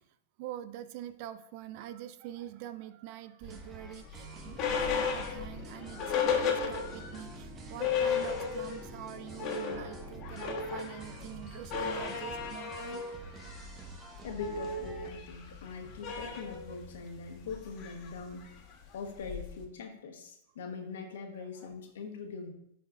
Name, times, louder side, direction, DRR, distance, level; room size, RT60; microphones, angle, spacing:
voice 1, 0.4-13.1 21.4-21.7, right 12 dB, 50° right, 13 dB, 0.4 m, -45 dB
sound 1, 3.4-15.1, right 3 dB, 25° right, 0.9 m, -49 dB
sound 2, 3.6-7.2 7.5-7.6 7.8-8.9 9.2-19.7, left 6 dB, 40° left, 1.4 m, -35 dB
sound 3, 4.4-12.6, left 3 dB, 15° left, 1.2 m, -51 dB
voice 2, 14.2-18.5 18.9-22.5, left 4 dB, 75° left, 3 dB, 1.3 m, -42 dB
11.0 x 4.1 x 2.6 m, 0.75 s
hypercardioid pair, 135°, 0 cm